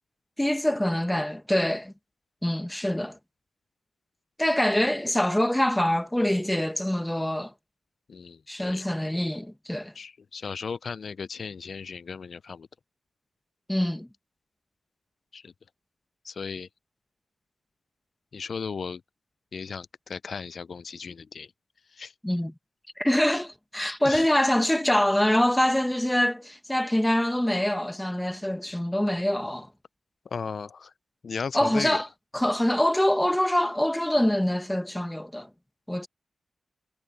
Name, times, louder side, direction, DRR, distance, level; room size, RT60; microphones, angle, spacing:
voice 1, 0.4-1.9 2.4-3.2 4.4-7.5 8.5-9.9 13.7-14.1 22.2-22.5 23.0-29.7 31.5-32.1 32.3-35.5 35.9-36.1, left 1 dB, 10° left, 1.6 m, -25 dB
voice 2, 8.1-8.8 9.9-12.7 15.3-15.5 16.2-16.7 18.3-19.0 19.5-21.5 21.9-22.1 24.0-24.3 30.3-30.9 31.2-32.0, left 5 dB, 65° left, 0.5 m, -36 dB
supercardioid pair, 40°, 0 cm